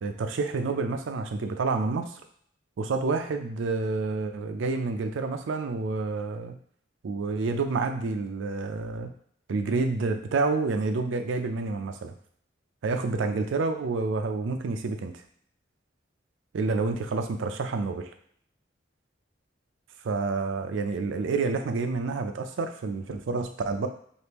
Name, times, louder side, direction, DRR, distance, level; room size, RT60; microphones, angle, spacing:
voice 1, 0.0-2.2 2.8-6.6 7.0-9.1 9.5-12.1 12.8-15.1 16.5-18.1 20.0-23.9, right 3 dB, 75° right, 6 dB, 0.4 m, -28 dB
2.9 x 2.5 x 3.4 m, 0.62 s
head